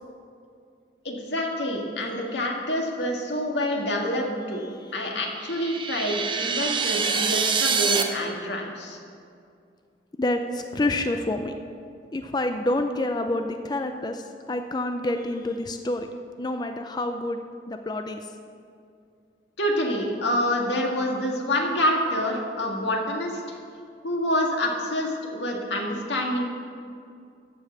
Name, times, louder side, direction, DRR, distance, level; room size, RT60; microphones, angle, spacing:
voice 1, 1.0-4.6 4.9-9.0 19.6-23.4 24.0-26.4, left 1 dB, 90° left, 0 dB, 1.8 m, -27 dB
voice 2, 4.5-5.0 10.2-11.5 12.1-16.1 16.4-18.3, left 1 dB, 25° left, 6 dB, 0.4 m, -28 dB
sound 1, 5.3-8.0, right 5 dB, 30° right, 0.7 m, -25 dB
13.5 x 5.5 x 7.2 m, 2.4 s
head